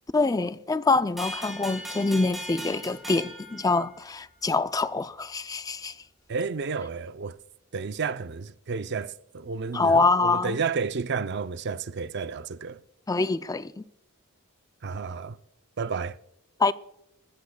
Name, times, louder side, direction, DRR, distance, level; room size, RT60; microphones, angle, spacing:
voice 1, 0.1-6.0 9.7-10.6 13.1-13.8 16.6-16.7, left 3 dB, 15° left, 0.4 m, -25 dB
sound 1, 1.2-4.4, equal, ahead, 4.1 m, -39 dB
voice 2, 6.3-7.4 7.7-12.8 14.8-15.4 15.8-16.2, right 5 dB, 50° right, 0.5 m, -31 dB
21.5 x 14.5 x 2.3 m
head